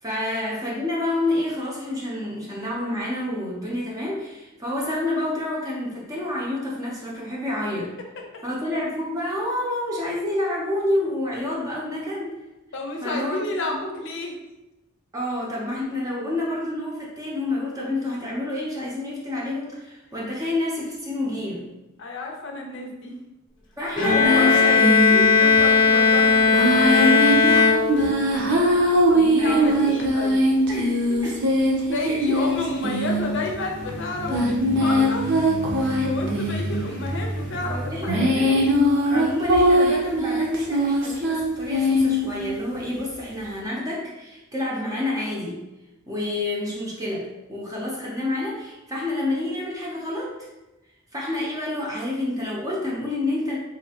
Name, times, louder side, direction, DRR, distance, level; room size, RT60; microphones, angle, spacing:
voice 1, 0.0-7.9 8.4-12.4 13.0-13.8 15.1-21.7 23.8-24.8 25.1-25.3 29.4-29.7 30.7-31.4 32.0-32.2 34.3-34.5 37.7-38.7 39.0-45.6 46.1-50.5 51.1-53.6, left 1 dB, 15° right, -5 dB, 0.7 m, -28 dB
voice 2, 12.7-14.3 22.0-23.1 24.1-24.9 25.4-28.1 29.1-30.5 31.9-34.3 34.8-35.3 36.0-38.0 38.2-38.6, left 2 dB, 60° left, 1 dB, 0.7 m, -30 dB
Bowed string instrument, 24.0-28.4, left 4 dB, 20° left, 0.7 m, -17 dB
sound 1, 24.2-25.6 26.5-42.4, equal, 55° right, 0.7 m, -22 dB
4.1 x 2.8 x 2.8 m, 1.0 s
head